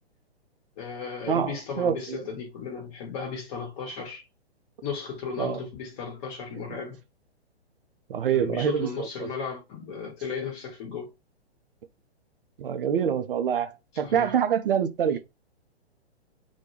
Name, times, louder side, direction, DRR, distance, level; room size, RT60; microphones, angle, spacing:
voice 1, 0.8-4.2 4.8-7.0 8.3-11.1 14.0-14.3, left 5 dB, 30° left, 0.9 m, -35 dB
voice 2, 1.3-2.2 5.4-5.6 6.6-6.8 8.1-9.3 12.6-15.2, right 8 dB, 55° right, 0.4 m, -26 dB
2.2 x 2.1 x 3.0 m
figure-of-eight pair, 125°, 33 cm